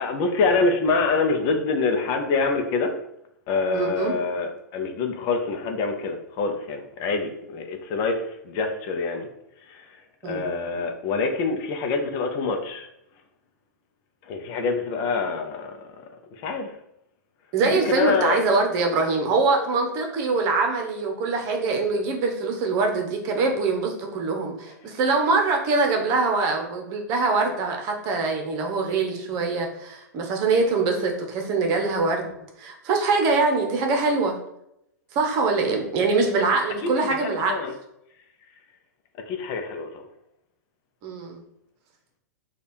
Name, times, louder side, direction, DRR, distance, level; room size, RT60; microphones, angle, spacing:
voice 1, 0.0-2.9 3.5-9.3 10.2-12.9 14.3-15.7 16.4-16.7 17.7-18.4 35.7-35.8 36.8-36.9 37.2-37.7 39.3-39.9, left 4 dB, 40° left, 5 dB, 0.6 m, -25 dB
voice 2, 3.7-4.1 10.2-10.5 17.5-32.3 32.6-34.4 35.1-37.5 41.0-41.4, right 3 dB, 40° right, 2 dB, 0.9 m, -23 dB
3.3 x 2.4 x 4.2 m, 0.80 s
hypercardioid pair, 105°, 9 cm